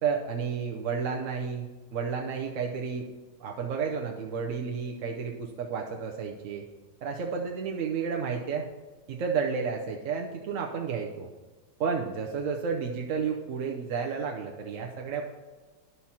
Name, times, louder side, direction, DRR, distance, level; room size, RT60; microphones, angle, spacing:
voice 1, 0.0-3.1 3.4-6.6 7.0-8.7 9.1-11.3 11.8-15.2, right 6 dB, 60° right, 1 dB, 0.9 m, -31 dB
11.0 x 4.5 x 5.6 m, 1.3 s
omnidirectional pair, 1.9 m